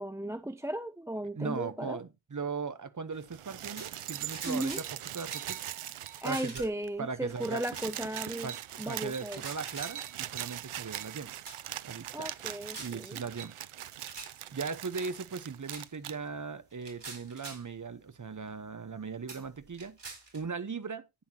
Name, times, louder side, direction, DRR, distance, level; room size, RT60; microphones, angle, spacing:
voice 1, 0.0-2.0 4.5-4.8 6.2-8.5 8.8-9.4 12.1-13.2, right 1 dB, 5° right, 0.4 m, -36 dB
voice 2, 1.3-5.6 6.2-6.7 7.0-7.6 8.4-11.3 11.8-12.3 12.8-13.5 14.5-20.0 20.3-21.0, right 5 dB, 35° right, 1.0 m, -38 dB
sound 1, 3.2-6.6 6.8-6.9 7.2-16.2 17.1-17.2, right 12 dB, 85° right, 0.6 m, -41 dB
sound 2, 3.8-4.0 4.3-4.9 5.3-5.5 6.2-6.8 7.8-7.9 9.2-10.0 10.8-11.1 11.5-11.6 12.1-13.0 14.0-14.4 15.7-15.9 16.7-17.7 18.5-18.6 19.3-20.4, right 4 dB, 55° right, 4.4 m, -45 dB
11.5 x 9.4 x 2.9 m
wide cardioid pair, 105°, 49 cm